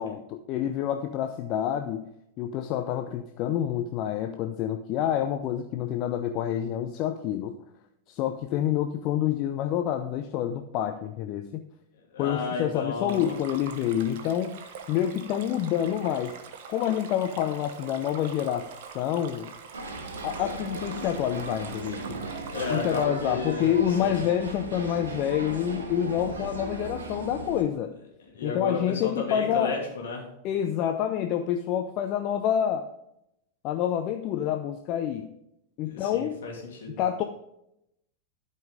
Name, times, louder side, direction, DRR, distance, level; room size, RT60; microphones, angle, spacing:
voice 1, 0.0-2.1 2.4-7.6 8.1-11.6 12.2-16.4 16.7-18.7 18.9-19.5 20.2-22.2 22.7-27.9 28.4-29.8 30.4-32.9 33.6-35.3 35.8-36.3 37.0-37.2, left 10 dB, 40° left, 7 dB, 0.5 m, -28 dB
voice 2, 12.1-13.4 22.5-24.2 28.2-30.3 35.8-37.0, left 4 dB, 60° left, -2 dB, 2.6 m, -33 dB
Stream, 13.1-23.0, right 6 dB, 50° right, 1.0 m, -44 dB
sound 1, 19.7-27.6, right 2 dB, 70° right, 1.4 m, -37 dB
12.0 x 5.3 x 3.8 m, 0.81 s
figure-of-eight pair, 90°, 0 cm